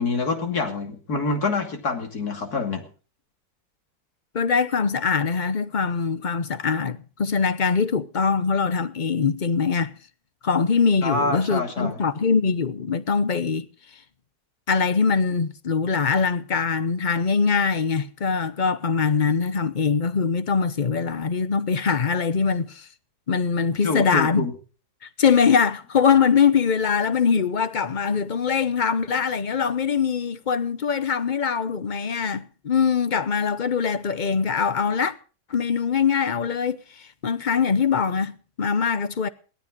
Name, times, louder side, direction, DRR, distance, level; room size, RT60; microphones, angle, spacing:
voice 1, 0.0-2.8 11.0-12.0 23.8-24.5, left 3 dB, 75° left, 3.2 m, -26 dB
voice 2, 4.3-9.9 10.4-13.7 14.7-22.9 23.3-24.5 25.2-35.1 35.5-36.8 37.2-39.3, left 6 dB, 35° left, 0.9 m, -22 dB
17.5 x 13.0 x 5.2 m
omnidirectional pair, 1.6 m